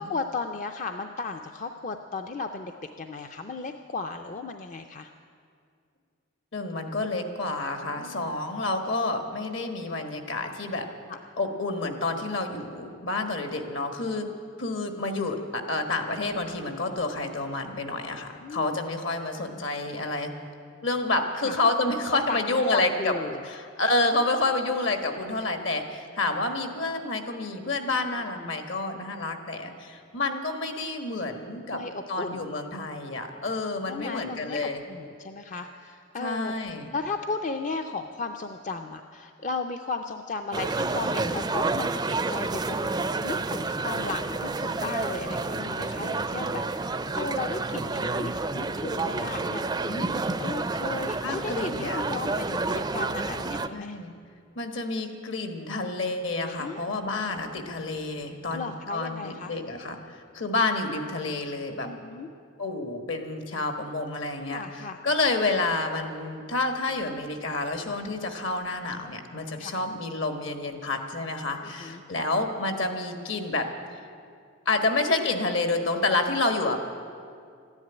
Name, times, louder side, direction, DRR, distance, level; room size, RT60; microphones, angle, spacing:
voice 1, 0.0-5.1 8.0-8.4 11.1-11.2 14.0-14.4 18.4-18.8 21.4-21.5 22.1-23.4 28.4-28.6 31.7-32.5 33.9-34.6 34.9-36.5 36.9-42.9 43.2-50.0 50.4-54.0 56.6-56.9 58.5-59.6 61.8-62.3 64.5-65.0 69.6-69.8 71.6-72.0, left 3 dB, 35° left, 5 dB, 0.5 m, -35 dB
voice 2, 6.5-10.9 11.4-14.3 14.6-20.3 20.8-23.1 23.4-31.8 32.1-34.8 36.2-36.9 49.9-50.4 51.2-52.0 53.7-54.1 54.5-61.9 62.6-73.7 74.6-76.8, left 2 dB, 65° left, 6 dB, 1.5 m, -29 dB
sound 1, 40.5-53.7, right 3 dB, 20° right, 0.4 m, -29 dB
13.5 x 10.5 x 9.9 m, 2.3 s
head